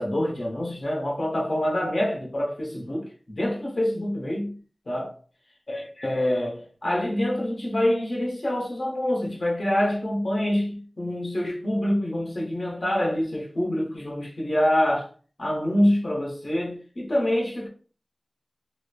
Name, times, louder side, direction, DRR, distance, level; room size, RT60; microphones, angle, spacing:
voice 1, 0.0-4.5 4.9-5.1 5.7-15.1 15.4-17.7, left 1 dB, 65° left, 0.9 m, -26 dB
2.9 x 2.0 x 2.3 m
wide cardioid pair, 60°, 0 cm